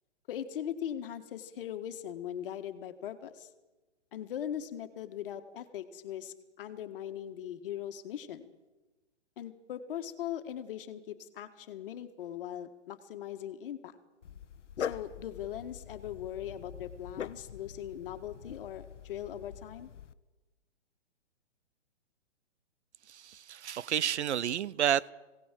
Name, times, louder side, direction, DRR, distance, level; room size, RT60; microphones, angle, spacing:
voice 1, 0.3-3.5 4.1-8.5 9.4-14.0 14.8-19.9, left 10 dB, 50° left, 1.8 m, -40 dB
Dog, 14.2-20.1, left 8 dB, 85° left, 0.9 m, -43 dB
voice 2, 23.1-25.1, right 10 dB, 70° right, 0.7 m, -30 dB
20.0 x 17.5 x 7.5 m
hypercardioid pair, 140°, 35 cm